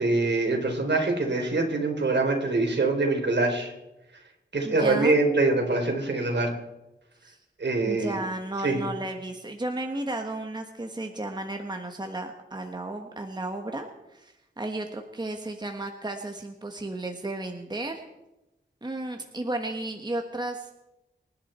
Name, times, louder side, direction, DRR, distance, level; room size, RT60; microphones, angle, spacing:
voice 1, 0.0-3.7 4.5-6.5 7.6-8.2 8.6-8.8, right 3 dB, 65° right, 3 dB, 3.6 m, -24 dB
voice 2, 4.6-5.2 7.2-7.4 7.8-18.0 18.8-20.7, right 2 dB, 20° right, 4 dB, 1.4 m, -33 dB
26.5 x 11.5 x 4.4 m, 0.95 s
wide cardioid pair, 95°, 19 cm